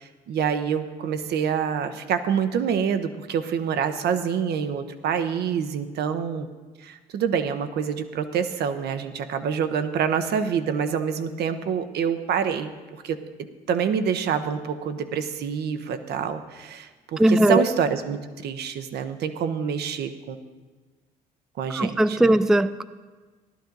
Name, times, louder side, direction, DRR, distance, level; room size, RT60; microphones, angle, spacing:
voice 1, 0.0-6.5 6.8-13.2 13.7-20.4 21.6-22.4, right 7 dB, 60° right, 9 dB, 0.8 m, -26 dB
voice 2, 17.2-17.6 21.8-22.8, right 1 dB, ahead, 13 dB, 0.3 m, -19 dB
13.0 x 11.5 x 3.9 m, 1.3 s
hypercardioid pair, 55°, 19 cm